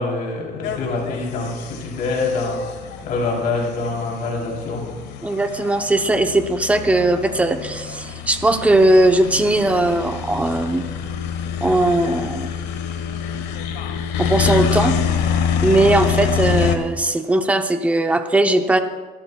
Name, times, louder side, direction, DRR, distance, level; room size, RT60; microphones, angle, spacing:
voice 1, 0.0-2.6 3.0-4.9, left 3 dB, 55° left, -2 dB, 3.3 m, -25 dB
sound 1, 0.6-16.8, left 7 dB, 80° left, 1.3 m, -26 dB
voice 2, 5.2-10.9 11.6-12.5 14.2-15.0 15.6-18.8, right 2 dB, 10° right, 7 dB, 0.7 m, -18 dB
26.5 x 12.5 x 2.3 m, 1.4 s
cardioid pair, 160°, 18 cm